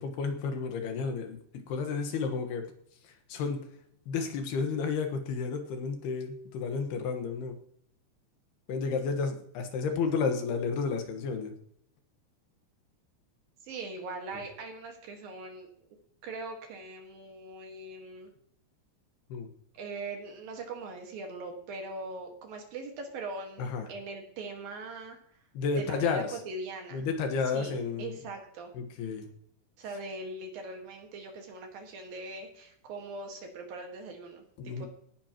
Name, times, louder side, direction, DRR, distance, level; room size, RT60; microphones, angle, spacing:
voice 1, 0.0-2.7 3.0-3.6 4.1-7.6 8.7-11.5 19.3-19.5 23.6-23.9 25.5-26.3 26.9-28.2 28.7-29.3 34.6-34.9, left 5 dB, 70° left, 5 dB, 3.3 m, -32 dB
voice 2, 13.6-15.7 16.2-18.3 19.7-25.2 25.8-27.0 27.5-28.7 29.8-34.9, right 3 dB, 60° right, 3 dB, 3.2 m, -41 dB
18.0 x 11.0 x 3.0 m, 0.64 s
omnidirectional pair, 4.9 m